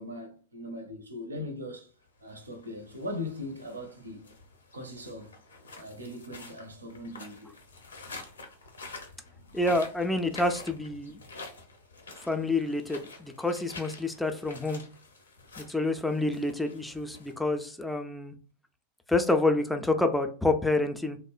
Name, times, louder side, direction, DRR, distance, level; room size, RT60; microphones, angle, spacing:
voice 1, 0.0-1.9 2.2-4.2 4.7-5.3 5.8-7.5, left 1 dB, 75° right, 0.5 m, -39 dB
sound 1, 2.2-17.9, left 3 dB, 70° left, 0.5 m, -48 dB
voice 2, 9.5-11.2 12.3-14.8 15.6-18.3 19.1-21.2, left 2 dB, 5° left, 0.4 m, -28 dB
2.9 x 2.0 x 2.3 m
figure-of-eight pair, 90°, 0 cm